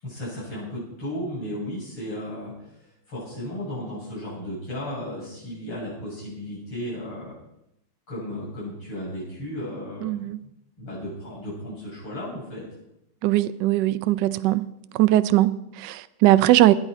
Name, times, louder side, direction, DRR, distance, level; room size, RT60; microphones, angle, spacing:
voice 1, 0.0-2.5 3.1-7.3 8.1-10.3 10.8-12.6, left 1 dB, 85° left, 8.7 m, -34 dB
voice 2, 10.0-10.4 13.2-14.6 14.9-16.7, right 15 dB, 70° right, 1.1 m, -20 dB
19.0 x 10.0 x 5.0 m
omnidirectional pair, 2.3 m